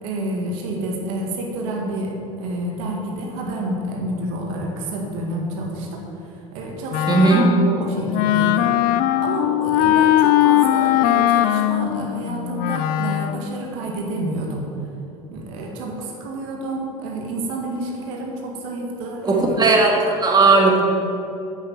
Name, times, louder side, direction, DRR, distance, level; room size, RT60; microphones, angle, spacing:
voice 1, 0.0-8.7 9.2-14.7 15.3-19.6, right 1 dB, 70° right, -1 dB, 1.9 m, -29 dB
Wind instrument woodwind instrument, 6.9-13.5, left 13 dB, 60° left, 0.5 m, -19 dB
voice 2, 7.1-7.4 19.2-20.8, right 3 dB, 25° right, -1 dB, 2.3 m, -16 dB
8.2 x 6.6 x 7.5 m, 2.8 s
hypercardioid pair, 80°, 17 cm